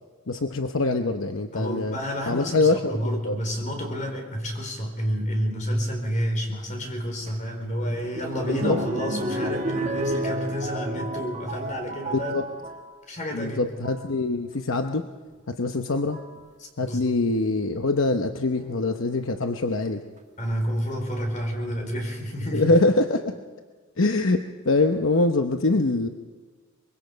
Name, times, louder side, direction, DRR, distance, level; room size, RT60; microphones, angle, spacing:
voice 1, 0.3-2.0 2.3-3.4 8.5-8.8 12.1-12.4 13.3-15.1 15.5-16.2 16.8-20.0 22.5-23.3 24.0-26.1, left 2 dB, 70° left, 6 dB, 0.9 m, -24 dB
voice 2, 1.5-12.4 13.1-13.6 16.6-17.1 20.4-22.7, equal, 35° left, 3 dB, 4.4 m, -29 dB
sound 1, 7.3-12.9 13.6-14.1 15.3-15.4 16.1-16.4 18.6-19.2 19.9-20.0 20.2-20.3, right 2 dB, 35° right, 1.6 m, -32 dB
24.0 x 22.5 x 5.2 m, 1.5 s
head